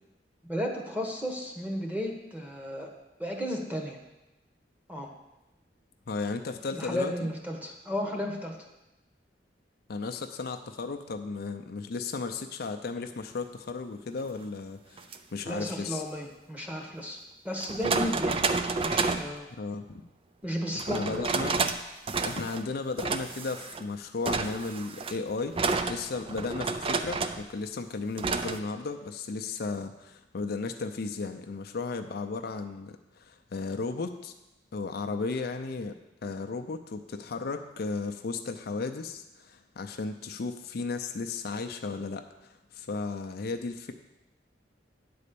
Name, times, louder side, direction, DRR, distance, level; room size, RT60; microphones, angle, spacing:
voice 1, 0.4-2.9 3.2-4.0 4.9-5.1 6.7-8.6 15.4-17.2 17.4-18.4 18.8-19.5 20.4-21.2, equal, 10° right, 1 dB, 1.2 m, -33 dB
voice 2, 6.1-7.3 9.9-16.0 19.6-20.1 20.7-21.6 22.2-25.5 25.9-34.3 34.7-35.9 36.2-43.9, left 4 dB, 60° left, 6 dB, 0.5 m, -35 dB
sound 1, 15.0-15.2 16.8-16.9 17.6-19.3 20.8-21.8 22.1-22.6 23.0-23.8 24.3-27.5 28.2-28.6, right 4 dB, 30° right, 0.4 m, -30 dB
9.5 x 4.2 x 6.8 m, 0.97 s
head